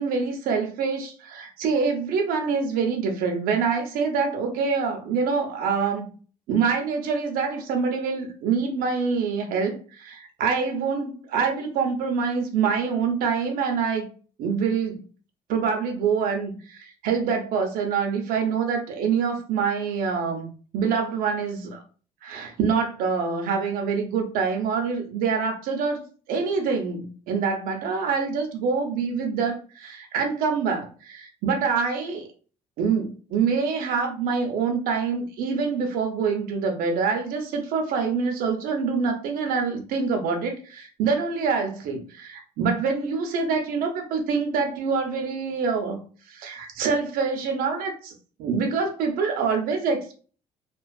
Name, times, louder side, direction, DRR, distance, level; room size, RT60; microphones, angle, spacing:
voice 1, 0.0-6.1 6.5-14.1 14.4-15.0 15.5-20.5 20.7-21.8 22.2-32.3 32.8-46.0 46.3-48.1 48.4-50.1, right 5 dB, 80° right, 0.7 m, -25 dB
2.4 x 2.3 x 2.3 m
cardioid pair, 120°, 15 cm